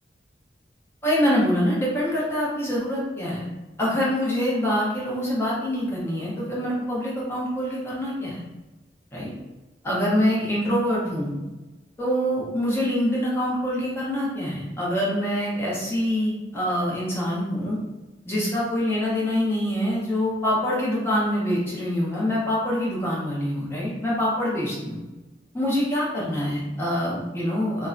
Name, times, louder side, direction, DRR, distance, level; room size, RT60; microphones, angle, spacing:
voice 1, 1.0-3.5 3.8-8.4 9.1-9.3 9.8-11.4 12.0-17.8 18.2-25.0 25.5-27.9, equal, 15° left, -7 dB, 0.6 m, -25 dB
2.5 x 2.1 x 2.4 m, 1.1 s
head